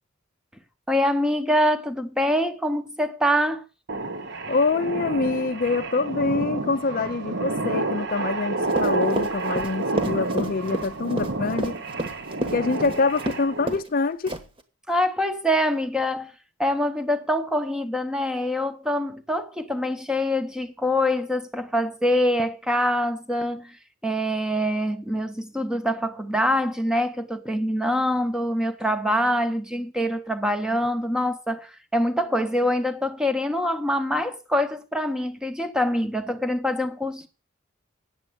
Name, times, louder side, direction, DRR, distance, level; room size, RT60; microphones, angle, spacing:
voice 1, 0.9-3.6 14.9-16.3 16.6-23.8 24.0-37.3, equal, 5° right, 0.9 m, -25 dB
sound 1, 3.9-13.8, right 2 dB, 60° right, 1.1 m, -29 dB
voice 2, 4.5-11.8 12.5-14.3, left 3 dB, 45° left, 0.5 m, -25 dB
Run, 8.7-13.4 13.7-13.9 14.3-14.6, right 1 dB, 25° right, 1.3 m, -30 dB
8.6 x 7.5 x 7.8 m
head